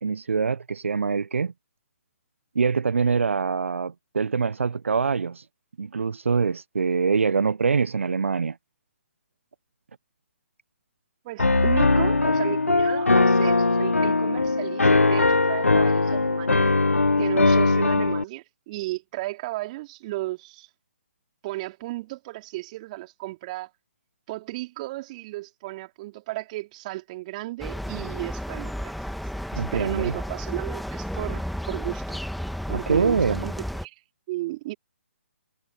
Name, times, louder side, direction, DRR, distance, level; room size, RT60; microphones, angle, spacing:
voice 1, 0.0-1.5 2.5-5.5 5.8-8.6 29.6-30.1 32.7-33.5, right 5 dB, 65° right, 0.9 m, -24 dB
voice 2, 11.2-16.7 17.2-20.7 21.4-23.7 24.3-28.9 29.5-32.2 32.7-33.9 34.3-34.7, right 19 dB, 35° right, 4.7 m, -34 dB
Piano, 11.4-18.2, left 3 dB, 80° left, 1.6 m, -20 dB
sound 1, 27.6-33.8, equal, ahead, 2.4 m, -32 dB
figure-of-eight pair, 135°, 7 cm